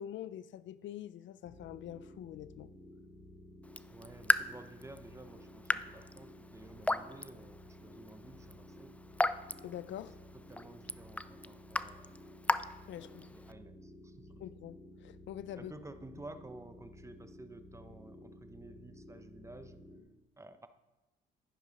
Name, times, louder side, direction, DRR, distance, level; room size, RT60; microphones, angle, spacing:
voice 1, 0.0-2.7 9.6-10.2 12.9-13.3 14.4-15.7, left 11 dB, 70° left, 16 dB, 0.5 m, -45 dB
sound 1, 1.4-20.0, equal, 45° left, 3.1 m, -54 dB
Raindrop / Drip, 3.6-13.5, left 2 dB, 5° left, 0.4 m, -37 dB
voice 2, 3.9-9.0 10.5-12.1 13.2-14.4 15.6-19.8 20.4-20.7, right 2 dB, 15° right, 10 dB, 0.8 m, -52 dB
11.0 x 10.5 x 5.1 m, 1.1 s
cardioid pair, 90°, 20 cm